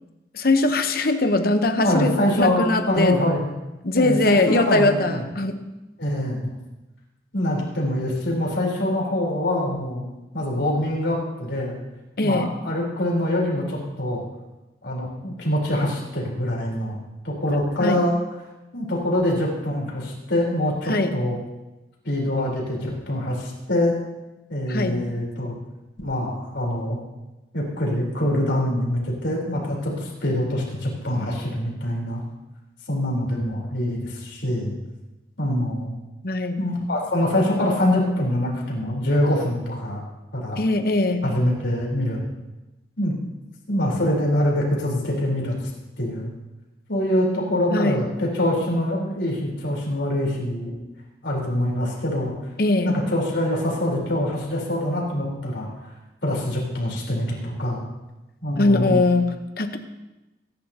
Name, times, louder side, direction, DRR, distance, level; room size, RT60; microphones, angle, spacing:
voice 1, 0.3-3.2 3.8-5.6 12.2-12.5 17.8-18.0 20.9-21.1 24.7-25.0 36.2-36.6 40.6-41.3 47.7-48.0 52.6-52.9 58.6-59.8, left 2 dB, 50° left, 7 dB, 1.0 m, -21 dB
voice 2, 1.8-3.4 3.9-5.2 6.0-6.5 7.3-10.0 10.3-11.8 12.2-14.2 14.8-17.0 17.2-18.2 18.7-21.4 22.0-24.0 24.5-25.5 26.0-27.0 27.5-32.2 32.9-34.7 35.4-35.9 36.6-40.0 40.3-40.6 41.2-42.2 43.0-43.1 43.7-45.5 46.0-46.3 46.9-50.7 51.2-52.3 52.8-55.7 56.2-57.8 58.4-59.0, left 1 dB, 70° left, -3 dB, 4.0 m, -24 dB
22.5 x 10.5 x 2.9 m, 1.0 s
head